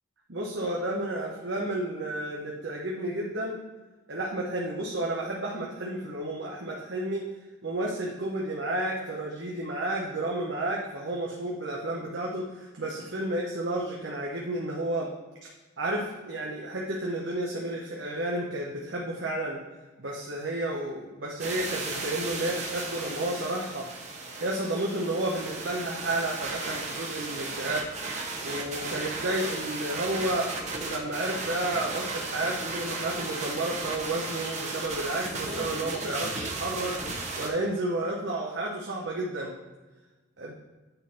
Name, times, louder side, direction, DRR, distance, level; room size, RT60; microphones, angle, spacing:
voice 1, 0.3-3.6 4.1-7.2 7.6-15.1 15.8-19.6 20.0-23.9 24.4-27.8 28.4-30.5 30.8-39.5 40.4-40.5, right 1 dB, 70° right, -3 dB, 0.9 m, -31 dB
sound 1, 21.4-37.5, right 3 dB, 35° right, 0.9 m, -35 dB
9.1 x 3.8 x 4.2 m, 1.2 s
head